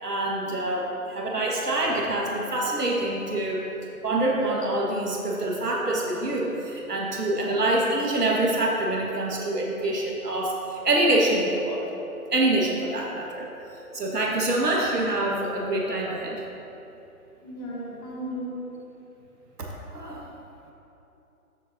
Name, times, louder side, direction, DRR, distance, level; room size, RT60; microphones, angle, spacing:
voice 1, 0.0-3.6 4.0-11.9 12.3-13.5 13.9-16.4 19.6-19.7 19.9-20.3, right 1 dB, 80° right, -2 dB, 1.7 m, -25 dB
voice 2, 17.4-18.6, right 1 dB, 15° left, -5 dB, 1.3 m, -36 dB
13.5 x 7.4 x 2.7 m, 2.9 s
figure-of-eight pair, 140°, 46 cm